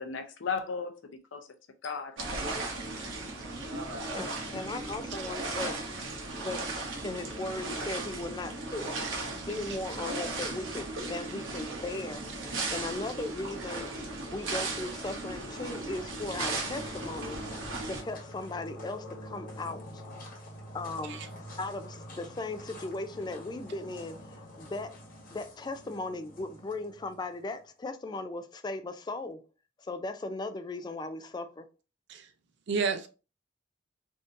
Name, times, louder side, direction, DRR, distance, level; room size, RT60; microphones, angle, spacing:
voice 1, 0.0-1.5 1.8-2.5, left 5 dB, 75° left, 0.6 m, -36 dB
sound 1, 2.2-18.0, right 2 dB, 90° right, 0.9 m, -36 dB
voice 2, 4.1-5.8 6.4-6.7 7.0-8.9 9.5-12.2 12.7-13.9 14.3-17.4 17.9-20.0 20.7-21.2 21.6-24.2 24.6-24.9 25.3-29.4 29.8-31.7, left 2 dB, 20° left, 0.3 m, -37 dB
voice 3, 9.0-9.5 21.0-21.3 32.1-32.3 32.7-33.1, right 5 dB, 60° right, 0.5 m, -32 dB
sound 2, 14.3-27.6, equal, 45° left, 1.1 m, -47 dB
3.5 x 2.6 x 2.6 m
head